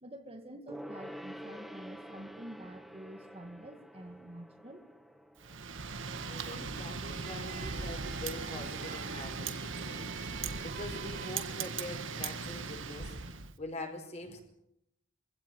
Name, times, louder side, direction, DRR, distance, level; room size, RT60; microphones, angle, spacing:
voice 1, 0.0-4.8, right 1 dB, 25° right, 5 dB, 2.0 m, -48 dB
Gong, 0.7-6.6 6.8-6.9, equal, ahead, 1.1 m, -48 dB
Wind, 5.4-13.5, right 5 dB, 60° right, 1.6 m, -39 dB
sound 1, 6.1-11.8, right 4 dB, 45° right, 3.1 m, -48 dB
voice 2, 6.2-14.4, left 2 dB, 30° left, 4 dB, 4.9 m, -44 dB
24.5 x 16.5 x 9.3 m, 0.82 s
head